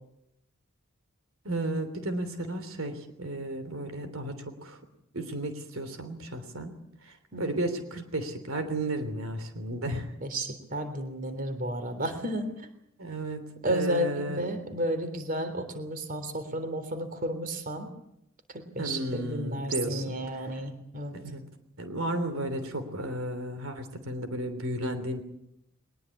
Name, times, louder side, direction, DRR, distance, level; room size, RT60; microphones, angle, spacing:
voice 1, 1.4-4.8 5.1-6.7 7.0-10.1 13.0-14.4 18.8-20.4 21.1-21.5 21.8-25.2, right 1 dB, 80° right, 9 dB, 3.2 m, -33 dB
voice 2, 10.2-12.5 13.6-17.9 18.5-21.2, right 1 dB, 40° right, 9 dB, 3.5 m, -32 dB
22.5 x 21.0 x 8.5 m, 0.81 s
head